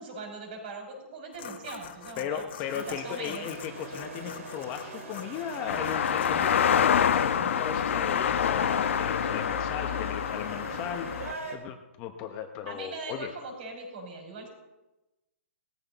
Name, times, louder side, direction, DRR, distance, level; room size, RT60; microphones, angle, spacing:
voice 1, 0.0-2.4 2.7-3.5 12.7-14.5, right 3 dB, 45° right, 2 dB, 5.8 m, -40 dB
sound 1, 1.3-6.6, left 8 dB, 45° left, 1.4 m, -45 dB
voice 2, 2.2-13.3, left 9 dB, 20° left, 5 dB, 0.8 m, -37 dB
sound 2, 2.6-11.6, right 3 dB, 85° right, 4.5 m, -41 dB
sound 3, 5.7-11.3, left 8 dB, 65° left, 0.9 m, -26 dB
19.0 x 14.5 x 4.0 m, 1.0 s
hypercardioid pair, 165°, 8 cm